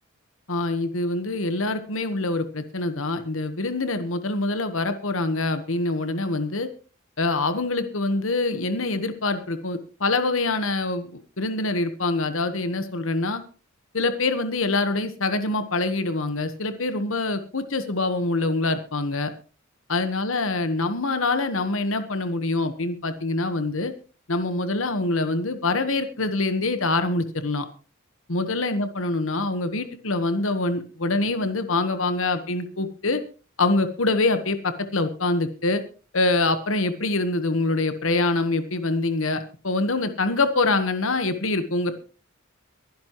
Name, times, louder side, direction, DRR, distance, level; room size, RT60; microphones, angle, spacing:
voice 1, 0.5-6.7 7.2-13.4 13.9-19.3 19.9-23.9 24.3-27.7 28.3-33.2 33.6-35.8 36.1-41.9, left 2 dB, 75° left, 9 dB, 1.3 m, -25 dB
23.0 x 10.5 x 3.1 m, 0.36 s
head